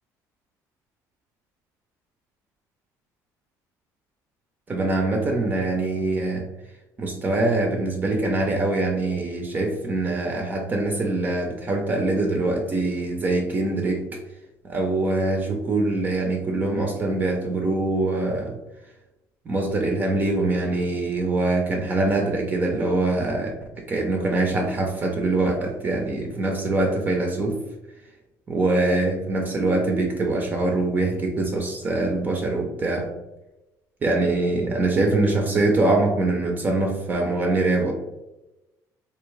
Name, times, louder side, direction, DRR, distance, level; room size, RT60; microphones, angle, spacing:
voice 1, 4.7-6.5 7.0-14.2 14.6-18.6 19.5-23.5 23.9-27.6 28.5-33.1 34.0-37.9, right 2 dB, 25° right, 2 dB, 0.5 m, -23 dB
3.5 x 2.8 x 3.1 m, 0.99 s
cardioid pair, 150°, 7 cm